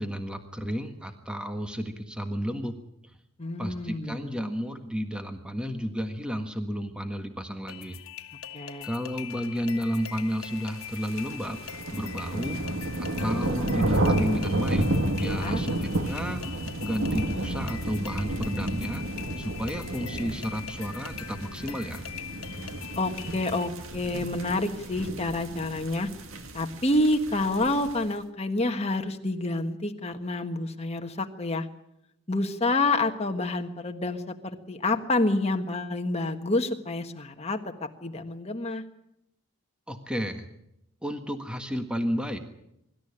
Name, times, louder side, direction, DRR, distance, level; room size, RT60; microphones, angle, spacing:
voice 1, 0.0-2.7 3.6-8.0 8.8-11.6 11.9-14.9 15.2-16.4 16.8-19.1 19.4-22.1 39.9-40.4 41.0-42.4, equal, 5° right, 6 dB, 1.5 m, -32 dB
voice 2, 3.4-4.3 8.5-8.9 15.2-15.6 23.0-26.1 26.5-31.7 32.3-37.6 38.0-38.8, left 2 dB, 30° left, 6 dB, 1.5 m, -28 dB
sound 1, 7.7-23.7, left 9 dB, 70° left, 1.5 m, -42 dB
sound 2, 10.6-28.1, right 1 dB, 65° right, 2.0 m, -31 dB
24.5 x 13.0 x 10.0 m, 0.81 s
head